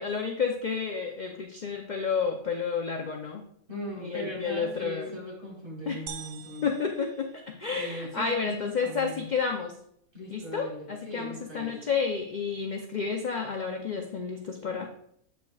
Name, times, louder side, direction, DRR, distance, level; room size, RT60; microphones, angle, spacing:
voice 1, 0.0-3.4 4.0-5.1 5.9-6.0 6.6-9.7 10.3-14.9, left 5 dB, 55° left, 2 dB, 0.5 m, -31 dB
voice 2, 3.7-6.7 7.7-9.3 10.1-11.8, equal, 35° right, -4 dB, 2.9 m, -39 dB
sound 1, 6.1-8.0, right 9 dB, 75° right, 1.0 m, -45 dB
8.1 x 6.9 x 2.3 m, 0.70 s
omnidirectional pair, 1.5 m